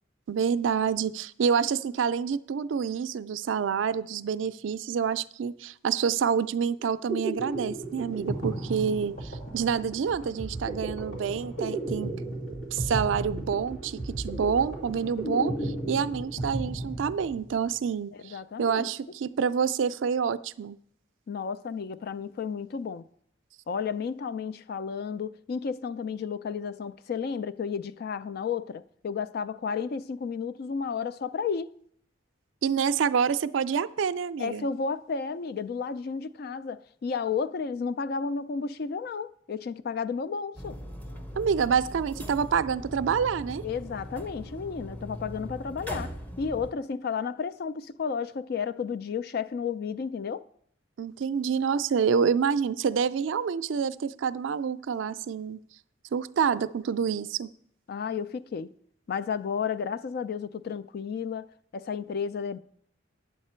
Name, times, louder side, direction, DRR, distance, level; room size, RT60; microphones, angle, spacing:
voice 1, 0.3-12.1 12.7-20.8 32.6-34.7 41.4-43.6 51.0-55.6 56.1-57.5, right 6 dB, 75° right, 0.4 m, -27 dB
sound 1, 6.8-17.6, right 2 dB, 85° left, 2.4 m, -34 dB
voice 2, 18.2-18.9 21.3-23.1 23.7-31.7 34.4-40.8 43.6-50.4 57.9-58.7 59.1-62.6, left 6 dB, 50° left, 0.3 m, -32 dB
sound 2, 40.6-46.7, equal, 10° left, 0.7 m, -40 dB
9.1 x 7.3 x 4.4 m
head